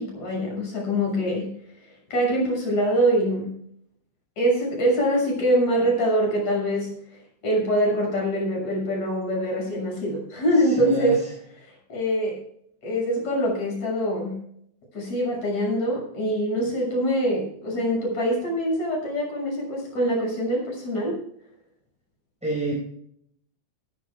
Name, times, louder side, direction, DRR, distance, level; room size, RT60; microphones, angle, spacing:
voice 1, 0.0-1.5 1.8-3.5 4.4-6.9 7.4-11.2 11.6-12.4 12.8-14.4 14.9-21.2, equal, 65° left, -1 dB, 7.9 m, -24 dB
voice 2, 10.8-11.2 22.4-22.7, equal, ahead, -3 dB, 4.8 m, -27 dB
18.0 x 14.5 x 2.4 m, 0.69 s
omnidirectional pair, 3.5 m